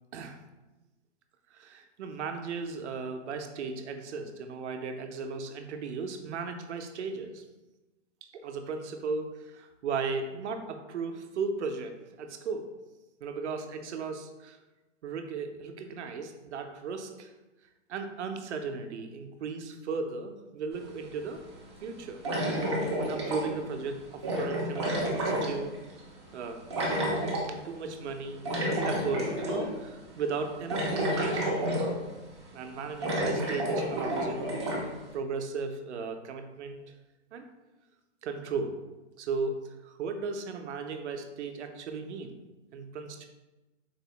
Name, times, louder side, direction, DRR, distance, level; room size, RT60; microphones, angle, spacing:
voice 1, 1.5-7.4 8.3-12.7 13.2-14.6 15.0-17.3 17.9-21.4 21.8-22.2 23.0-25.7 26.3-26.6 27.5-31.7 32.5-34.5 34.8-36.8 37.3-37.4 38.2-38.8 39.2-42.3 42.7-43.3, right 4 dB, 70° right, 6 dB, 0.6 m, -36 dB
sound 1, 20.9-21.0 22.2-23.7 24.2-26.0 26.7-27.5 28.4-29.7 30.1-30.2 30.7-32.2 32.5-32.6 33.0-34.8, right 1 dB, 25° right, 0.3 m, -30 dB
4.1 x 2.0 x 2.8 m, 1.1 s
hypercardioid pair, 155°, 36 cm